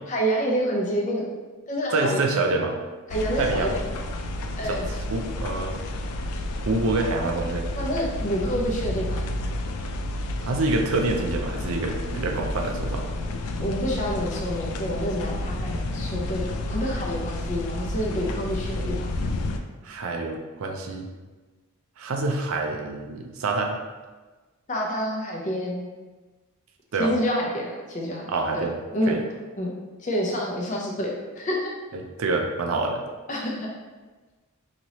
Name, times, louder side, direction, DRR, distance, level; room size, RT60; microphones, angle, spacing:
voice 1, 0.1-1.3 1.7-2.2 3.1-3.8 4.6-4.9 7.8-9.2 13.6-19.1 24.7-25.8 27.0-28.3 28.5-28.7 28.9-29.2 29.6-29.7 30.0-31.7 33.3-33.7, equal, 35° left, -2 dB, 0.5 m, -28 dB
voice 2, 1.9-2.8 3.4-3.7 4.6-4.8 5.1-5.8 6.6-7.7 10.4-13.0 19.8-21.1 22.0-23.8 26.9-27.1 28.3-28.7 29.1-29.2 31.9-33.0, right 3 dB, 70° right, 2 dB, 0.4 m, -26 dB
sound 1, 3.1-19.6, left 1 dB, 85° left, 0.3 m, -30 dB
2.9 x 2.9 x 2.8 m, 1.3 s
head